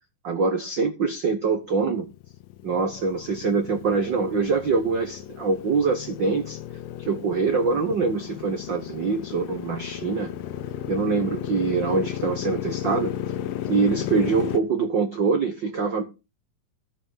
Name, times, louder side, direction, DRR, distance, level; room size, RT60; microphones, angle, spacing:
voice 1, 0.2-2.1 2.6-6.6 7.0-10.3 10.9-13.1 13.7-16.0, right 4 dB, 90° right, 1.0 m, -24 dB
Motorcycle, 1.9-14.6, left 12 dB, 85° left, 2.7 m, -34 dB
14.5 x 5.8 x 5.7 m
omnidirectional pair, 4.0 m